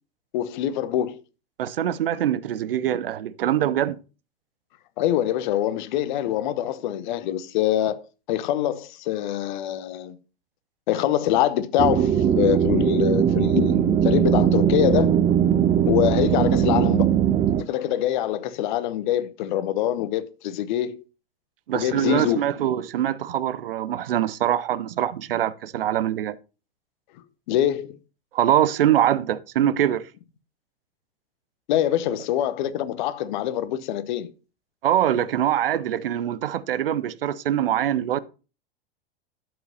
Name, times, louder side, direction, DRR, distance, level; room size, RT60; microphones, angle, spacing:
voice 1, 0.3-1.2 5.0-8.0 8.3-10.2 10.9-15.2 15.9-17.1 17.7-21.0 21.7-22.4 27.5-28.0 31.7-34.3, left 11 dB, 50° left, 0.9 m, -24 dB
voice 2, 1.6-4.0 21.7-26.4 28.3-30.1 34.8-38.2, right 11 dB, 60° right, 0.7 m, -23 dB
sound 1, 11.8-17.6, right 9 dB, 15° right, 0.3 m, -20 dB
12.0 x 7.8 x 2.8 m
figure-of-eight pair, 90°, 31 cm